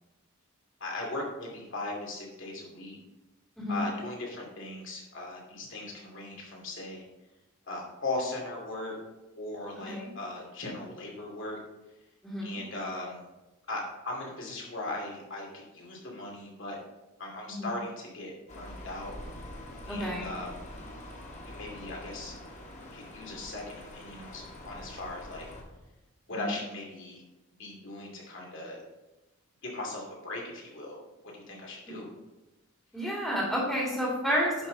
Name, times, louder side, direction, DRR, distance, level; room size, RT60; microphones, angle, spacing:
voice 1, 0.8-3.0 3.7-7.0 7.7-8.9 9.4-11.6 12.4-13.2 13.7-16.8 17.2-19.1 19.8-20.6 21.5-22.3 22.9-25.5 26.3-27.2 27.6-28.8 29.6-31.0 31.3-32.1, left 2 dB, 60° left, -1 dB, 2.4 m, -38 dB
voice 2, 12.2-12.6 17.5-17.7 19.9-20.3 26.3-26.5 31.9-32.0 32.9-34.7, equal, 5° left, -5 dB, 2.1 m, -31 dB
sound 1, 18.5-25.6, left 1 dB, 35° left, 1.5 m, -45 dB
10.5 x 5.8 x 3.8 m, 1.0 s
head